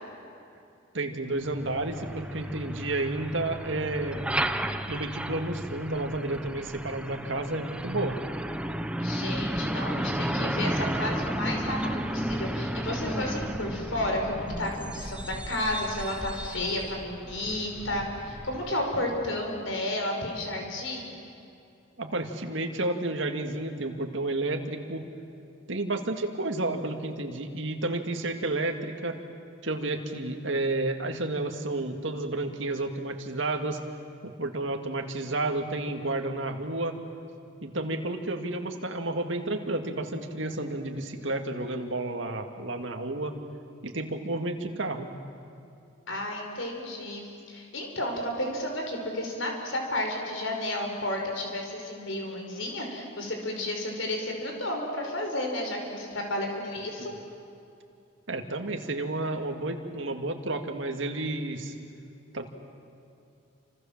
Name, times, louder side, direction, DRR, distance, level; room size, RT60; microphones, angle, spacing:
voice 1, 0.9-4.2 4.9-8.2 22.0-25.0 25.7-29.2 29.6-33.8 34.2-37.0 37.6-43.4 43.8-45.1 58.3-61.7 62.3-62.5, right 2 dB, 60° right, 4 dB, 2.2 m, -31 dB
Truck, 1.4-19.1, right 1 dB, 5° right, 0.8 m, -33 dB
voice 2, 9.0-21.2 46.1-57.1, left 1 dB, 70° left, 2 dB, 5.2 m, -32 dB
29.0 x 26.5 x 7.5 m, 2.6 s
head